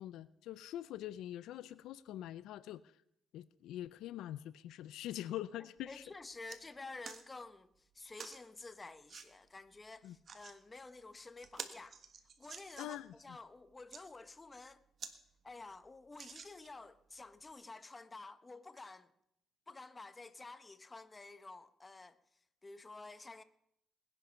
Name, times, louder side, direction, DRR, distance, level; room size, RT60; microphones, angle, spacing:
voice 1, 0.0-2.8 3.3-6.0 10.0-10.1 12.8-13.1, left 13 dB, 85° left, 0.5 m, -44 dB
voice 2, 5.6-12.0 12.4-14.9 15.4-19.1 19.7-22.2 22.6-23.4, left 3 dB, 25° left, 1.0 m, -51 dB
sound 1, 5.8-5.9 6.2-6.6 7.0-7.2 8.2-8.4 9.1-9.3 10.0-10.6 11.0-11.1 11.4-13.1 13.7-14.0 14.6-14.7 15.0-15.2 15.5-15.6 16.1-16.9 17.5-17.6, right 6 dB, 50° right, 1.5 m, -49 dB
20.0 x 10.5 x 5.7 m
cardioid pair, 90°, 0 cm